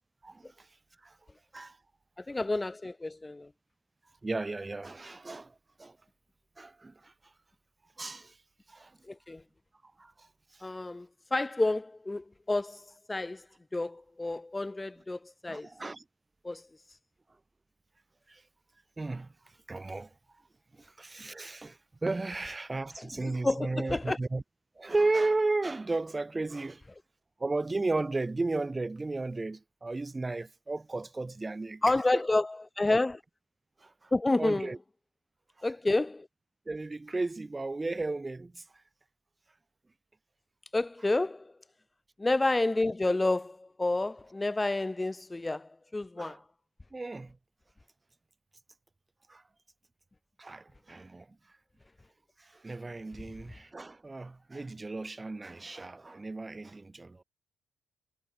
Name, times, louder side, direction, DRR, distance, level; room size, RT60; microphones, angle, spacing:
voice 1, 0.2-0.7 1.0-1.2 1.5-1.8 4.2-6.0 6.6-7.1 8.0-8.4 8.7-9.0 10.0-10.7 15.5-16.0 18.3-18.4 19.0-19.3 19.7-20.1 20.7-24.4 24.8-26.8 27.4-31.8 33.8-34.1 34.4-34.8 35.6-35.7 36.7-38.6 46.2-46.4 46.9-47.4 49.3-49.4 50.4-51.3 52.4-57.2, right 3 dB, 20° right, 1.0 m, -34 dB
voice 2, 2.2-3.5 9.1-9.4 10.6-13.4 13.7-15.7 16.4-16.7 23.0-24.2 31.8-33.2 34.1-34.7 35.6-36.3 40.7-41.5 42.2-46.4, left 2 dB, 15° left, 0.3 m, -30 dB
cardioid pair, 90°, 0 cm